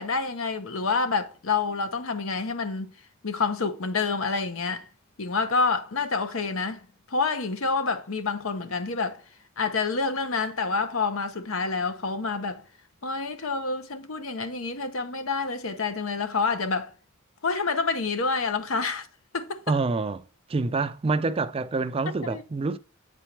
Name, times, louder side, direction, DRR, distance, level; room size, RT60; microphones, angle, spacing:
voice 1, 0.0-2.9 3.2-4.9 5.2-9.2 9.6-12.6 13.0-16.9 17.4-19.1 19.3-19.8 22.2-22.4, left 4 dB, 75° left, 0.9 m, -28 dB
voice 2, 19.7-20.2 20.5-22.8, right 3 dB, 25° right, 0.4 m, -26 dB
8.2 x 4.4 x 3.3 m
head